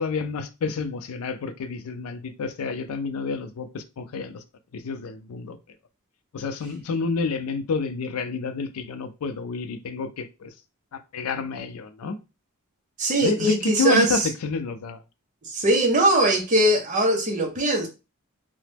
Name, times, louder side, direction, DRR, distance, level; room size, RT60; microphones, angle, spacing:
voice 1, 0.0-4.4 4.7-5.6 6.3-10.5 10.9-12.2 13.2-15.0, left 4 dB, 85° left, 0.4 m, -29 dB
voice 2, 13.0-14.3 15.4-17.9, right 1 dB, 35° right, 0.7 m, -21 dB
2.9 x 2.0 x 3.3 m
head